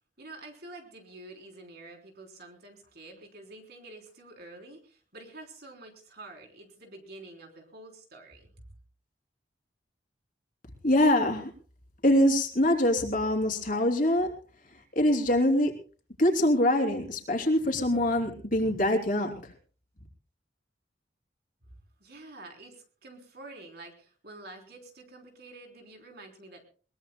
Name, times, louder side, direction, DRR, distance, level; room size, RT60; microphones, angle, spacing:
voice 1, 0.2-8.5 21.7-26.6, right 2 dB, 60° right, 3 dB, 3.7 m, -48 dB
voice 2, 10.8-11.5 12.0-14.3 14.7-15.7 16.2-19.5, left 1 dB, 45° left, 3 dB, 3.3 m, -24 dB
22.0 x 21.5 x 2.3 m, 0.39 s
head